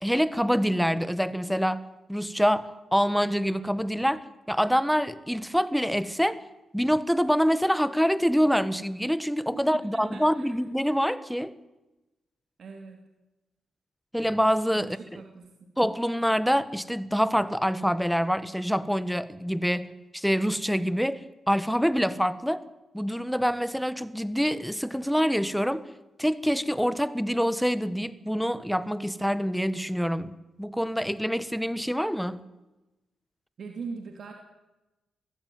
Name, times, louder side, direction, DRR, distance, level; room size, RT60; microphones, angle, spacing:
voice 1, 0.0-1.8 2.1-6.4 6.7-11.5 14.1-15.2 15.8-22.6 22.9-25.9 26.2-30.3 30.6-32.4, equal, ahead, 15 dB, 1.5 m, -26 dB
voice 2, 9.5-10.5 12.6-13.0 14.7-15.7 33.6-34.3, right 5 dB, 60° right, 3 dB, 2.9 m, -41 dB
23.0 x 15.5 x 9.5 m, 1.0 s
cardioid pair, 60°, 0 cm